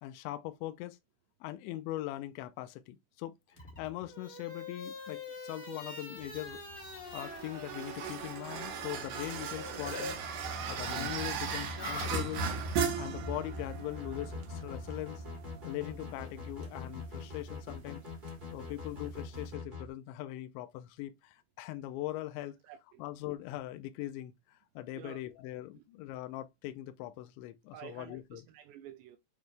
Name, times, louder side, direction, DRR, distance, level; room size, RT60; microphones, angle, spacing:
voice 1, 0.0-1.0 1.4-3.3 3.8-10.2 10.7-12.5 13.0-15.2 15.6-18.0 18.5-22.6 23.0-28.5, left 15 dB, 85° left, 2.9 m, -41 dB
sound 1, 3.5-10.1 10.4-12.7, left 3 dB, 25° left, 1.2 m, -45 dB
sound 2, 6.2-19.5, right 5 dB, 65° right, 2.6 m, -38 dB
sound 3, 13.9-19.9, left 4 dB, 20° right, 1.2 m, -43 dB
voice 2, 22.7-23.0 25.0-25.2 25.8-25.9 27.7-29.2, right 11 dB, 80° right, 2.8 m, -50 dB
9.1 x 3.1 x 3.3 m
omnidirectional pair, 5.2 m